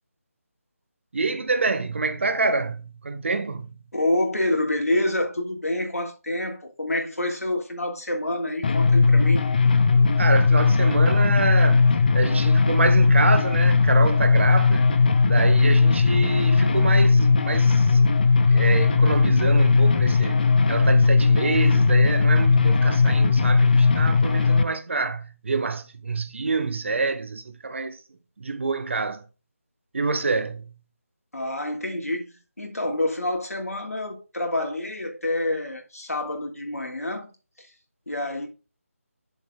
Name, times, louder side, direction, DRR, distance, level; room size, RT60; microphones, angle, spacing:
voice 1, 1.1-3.8 10.2-14.9 15.3-18.0 18.5-20.4 20.7-28.0 28.4-29.2 29.9-30.7, right 3 dB, 55° right, 1.3 m, -26 dB
voice 2, 3.9-9.4 31.3-37.3 37.6-37.7 38.1-38.5, left 1 dB, 90° left, 3.2 m, -27 dB
sound 1, 8.6-24.6, left 4 dB, 40° left, 0.9 m, -18 dB
7.3 x 7.1 x 3.8 m
figure-of-eight pair, 160°, 8 cm